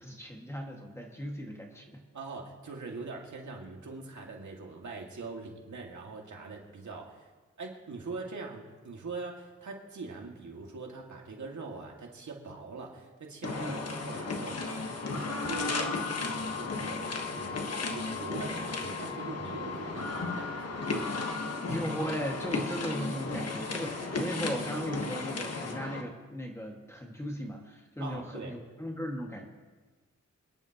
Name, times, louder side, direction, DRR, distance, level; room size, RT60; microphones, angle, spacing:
voice 1, 0.0-2.0 13.6-13.8 21.7-29.4, equal, 10° left, 0 dB, 1.8 m, -37 dB
voice 2, 2.1-7.3 7.6-17.0 17.3-17.6 17.9-21.0 28.0-28.5, right 3 dB, 75° right, 0 dB, 2.1 m, -42 dB
sound 1, 13.4-26.0, left 3 dB, 55° left, 1.3 m, -34 dB
27.5 x 10.5 x 3.0 m, 1.3 s
wide cardioid pair, 140°, 29 cm